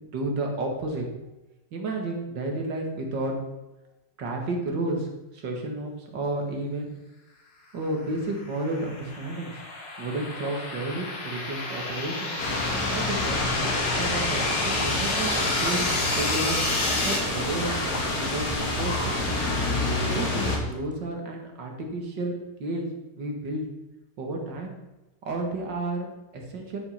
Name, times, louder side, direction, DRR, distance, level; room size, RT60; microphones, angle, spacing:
voice 1, 0.1-1.0 1.7-3.3 4.2-5.1 5.3-6.9 7.7-9.6 10.0-12.3 12.9-16.6 17.0-19.4 20.0-22.8 23.2-23.7 24.2-24.8 25.3-26.8, right 2 dB, 85° right, 1 dB, 2.4 m, -32 dB
sound 1, 8.2-17.2, left 2 dB, 85° left, 2.6 m, -30 dB
sound 2, 12.4-20.6, left 2 dB, 65° left, 2.7 m, -28 dB
sound 3, 13.6-20.9, right 1 dB, 5° right, 0.6 m, -39 dB
12.5 x 5.4 x 5.7 m, 1.0 s
omnidirectional pair, 1.9 m